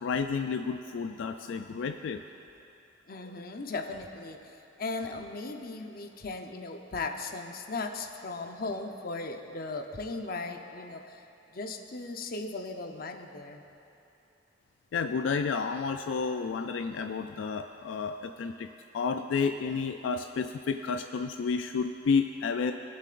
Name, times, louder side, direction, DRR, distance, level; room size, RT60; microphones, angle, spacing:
voice 1, 0.0-2.2 14.9-18.7 18.9-22.7, left 5 dB, 85° left, 7 dB, 0.3 m, -31 dB
voice 2, 3.1-11.2 11.5-13.6, left 3 dB, 50° left, 4 dB, 0.7 m, -37 dB
21.0 x 7.6 x 2.5 m, 2.9 s
head